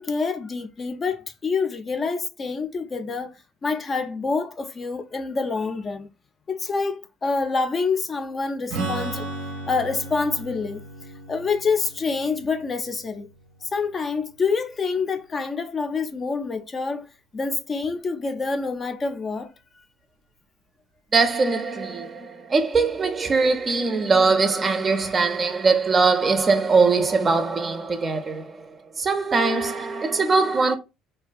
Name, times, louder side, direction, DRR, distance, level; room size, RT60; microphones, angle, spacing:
voice 1, 0.0-6.1 6.5-9.3 9.7-10.8 11.3-13.3 13.7-17.0 17.3-19.5, left 4 dB, 35° left, 0.4 m, -27 dB
Strum, 8.7-14.3, right 2 dB, 80° right, 0.6 m, -35 dB
voice 2, 21.1-28.6 29.0-30.8, right 4 dB, 35° right, 0.5 m, -21 dB
2.5 x 2.2 x 2.4 m
supercardioid pair, 80°, 0 cm